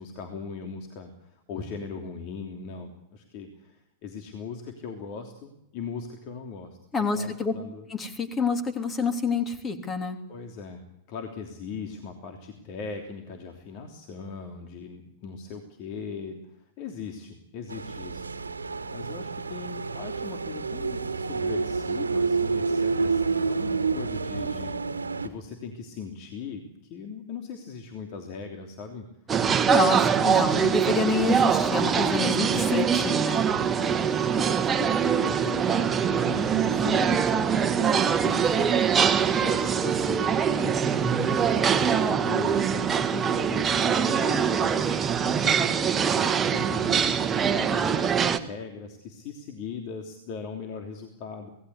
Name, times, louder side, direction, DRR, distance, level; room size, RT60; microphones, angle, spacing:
voice 1, 0.0-6.8 7.1-7.9 10.3-10.8 11.1-18.3 18.9-29.1 30.2-30.7 31.0-31.2 32.2-32.7 33.8-41.1 41.5-44.9 45.4-47.3 47.5-51.5, left 5 dB, 45° left, 4 dB, 3.1 m, -39 dB
voice 2, 6.9-7.5 7.9-10.2 29.7-33.5, left 4 dB, 20° left, 7 dB, 3.2 m, -27 dB
sound 1, 17.7-25.3, right 4 dB, 75° right, 1.7 m, -29 dB
sound 2, 29.3-48.4, right 7 dB, 20° right, 1.7 m, -23 dB
26.5 x 18.5 x 8.3 m, 0.84 s
figure-of-eight pair, 90°, 0 cm